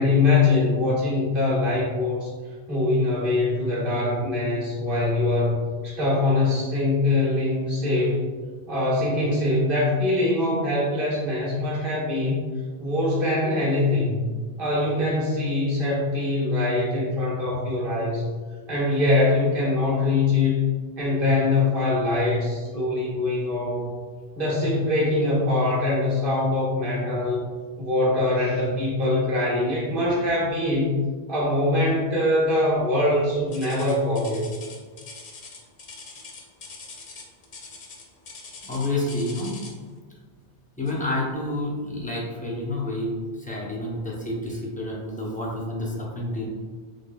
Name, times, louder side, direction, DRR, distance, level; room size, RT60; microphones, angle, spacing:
voice 1, 0.0-2.3 2.7-8.2 8.7-12.4 12.8-18.2 18.7-20.6 21.0-23.9 24.3-27.5 27.8-31.0 31.3-34.5, left 2 dB, 60° right, -6 dB, 1.4 m, -23 dB
sound 1, 33.5-39.9 40.8-41.1 41.7-41.8 42.4-42.5, left 4 dB, 70° left, 0.9 m, -43 dB
voice 2, 38.6-39.5 40.8-46.5, left 1 dB, 10° left, -4 dB, 0.5 m, -29 dB
3.6 x 3.6 x 2.2 m, 1.5 s
omnidirectional pair, 1.0 m